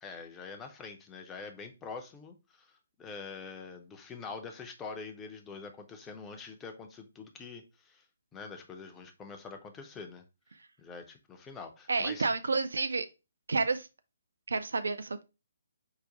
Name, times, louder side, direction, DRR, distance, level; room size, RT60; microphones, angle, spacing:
voice 1, 0.0-8.0 8.3-10.2 10.8-12.3, left 4 dB, 10° left, 0.6 m, -45 dB
voice 2, 11.9-13.1 13.5-13.9 14.5-15.2, right 4 dB, 60° right, 0.5 m, -30 dB
4.8 x 2.5 x 3.7 m
figure-of-eight pair, 135°, 0 cm